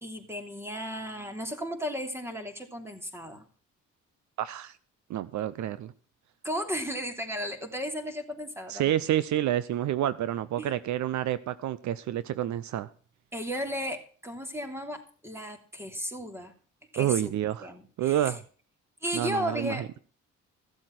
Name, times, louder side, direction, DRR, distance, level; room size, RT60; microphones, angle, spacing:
voice 1, 0.0-3.4 6.4-9.0 10.6-10.7 13.3-16.5 16.9-17.3 17.6-18.3 19.0-20.0, equal, 10° right, 5 dB, 3.0 m, -35 dB
voice 2, 4.4-4.8 5.1-5.9 8.7-12.9 17.0-17.7 18.0-18.4 19.1-19.9, right 12 dB, 70° right, 16 dB, 0.7 m, -29 dB
15.0 x 7.8 x 6.0 m, 0.42 s
cardioid pair, 90°, 30 cm